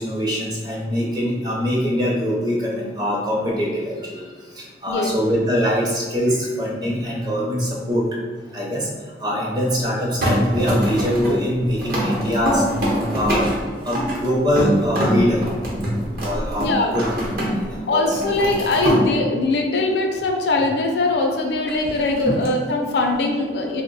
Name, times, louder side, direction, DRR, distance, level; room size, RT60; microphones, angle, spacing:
voice 1, 0.0-4.2 4.6-8.2 8.5-8.9 9.2-12.6 13.1-13.5 13.8-15.5 16.2-17.1 17.6-18.2 22.3-22.4, equal, 20° right, -3 dB, 0.6 m, -23 dB
sound 1, 10.2-17.7 18.0-19.0 21.7-22.5, equal, 55° right, 0.8 m, -24 dB
voice 2, 16.6-17.0 17.9-23.8, left 2 dB, 65° left, 2 dB, 0.4 m, -21 dB
2.9 x 2.1 x 3.9 m, 1.5 s
head